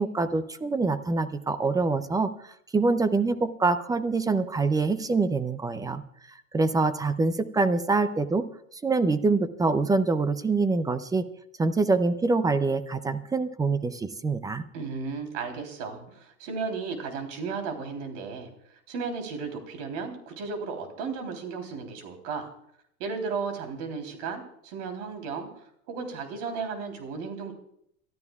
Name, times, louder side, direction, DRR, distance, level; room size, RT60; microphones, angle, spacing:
voice 1, 0.0-6.0 6.3-8.5 8.7-11.2 11.6-14.6, right 3 dB, 10° right, 13 dB, 0.5 m, -25 dB
voice 2, 14.7-18.5 18.9-22.5 23.0-25.5 25.9-27.5, right 5 dB, 60° right, 5 dB, 3.6 m, -34 dB
30.0 x 13.0 x 2.4 m, 0.72 s
hypercardioid pair, 110°, 41 cm